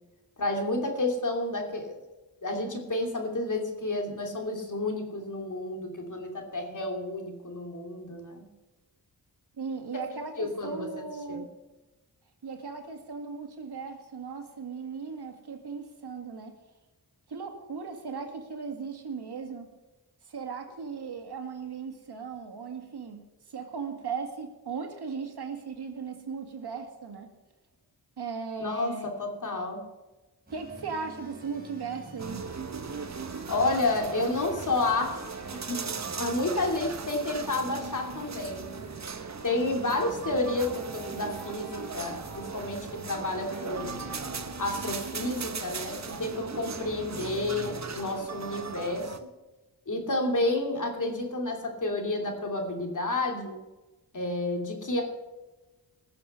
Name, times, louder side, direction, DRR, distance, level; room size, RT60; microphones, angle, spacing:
voice 1, 0.4-2.0 2.4-8.5 10.4-10.9 11.3-11.4 28.6-28.9 29.2-29.8 33.3-35.2 35.5-38.7 39.4-44.0 44.6-49.1 49.9-53.5 54.1-55.0, left 2 dB, 50° left, 2 dB, 2.8 m, -30 dB
voice 2, 9.6-11.5 12.4-16.5 17.3-19.7 20.3-23.2 23.5-27.3 28.2-29.1 30.5-32.4, right 5 dB, 75° right, 4 dB, 2.0 m, -37 dB
sound 1, 30.5-47.8, right 2 dB, 20° right, 4.4 m, -48 dB
sound 2, 32.2-49.2, right 5 dB, 45° right, 1.0 m, -38 dB
20.0 x 6.9 x 5.6 m, 1.1 s
wide cardioid pair, 75°, 39 cm